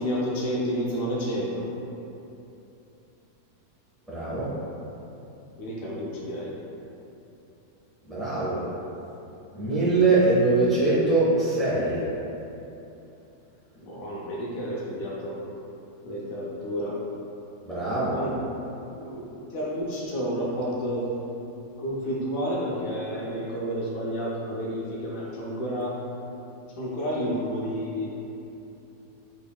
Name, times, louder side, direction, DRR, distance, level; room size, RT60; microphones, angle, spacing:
voice 1, 0.0-1.7 5.6-6.5 13.8-15.4 16.0-17.0 18.1-18.3 19.0-21.1 21.8-25.9 26.8-28.1, equal, 70° left, -5 dB, 0.8 m, -30 dB
voice 2, 4.1-4.5 8.1-8.6 9.5-12.0 17.6-18.2, right 2 dB, ahead, -11 dB, 0.5 m, -22 dB
3.7 x 3.5 x 2.2 m, 2.9 s
omnidirectional pair, 1.8 m